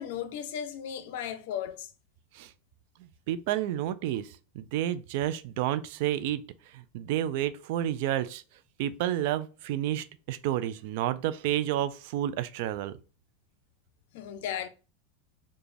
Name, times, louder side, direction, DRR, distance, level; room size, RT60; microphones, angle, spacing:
voice 1, 0.0-1.9 14.1-14.7, left 9 dB, 65° left, 0.6 m, -35 dB
voice 2, 3.0-6.4 6.7-8.4 8.8-13.0, right 12 dB, 60° right, 0.4 m, -30 dB
4.8 x 2.3 x 3.2 m
hypercardioid pair, 110°, 0 cm